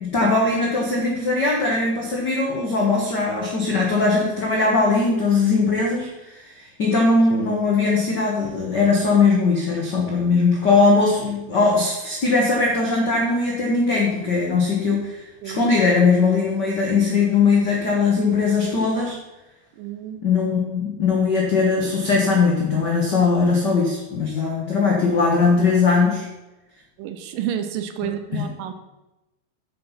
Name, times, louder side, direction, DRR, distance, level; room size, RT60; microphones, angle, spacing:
voice 1, 0.0-19.2 20.2-26.3 28.3-28.5, left 4 dB, 90° left, -2 dB, 0.9 m, -20 dB
voice 2, 19.8-20.2 27.0-28.7, right 10 dB, 75° right, 8 dB, 2.3 m, -30 dB
7.8 x 7.5 x 5.7 m, 1.0 s
omnidirectional pair, 4.2 m